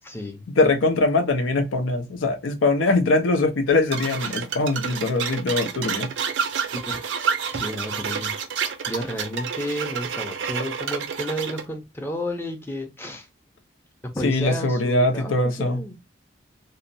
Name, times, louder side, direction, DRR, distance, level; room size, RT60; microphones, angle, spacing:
voice 1, 0.0-0.4 4.2-4.4 6.7-6.9 7.5-8.3 8.9-13.3 14.0-16.0, equal, 10° left, 0.5 m, -32 dB
voice 2, 0.6-6.1 14.2-15.8, left 2 dB, 90° left, 0.6 m, -22 dB
sound 1, 3.9-11.6, right 6 dB, 70° right, 0.4 m, -29 dB
2.7 x 2.0 x 2.5 m
head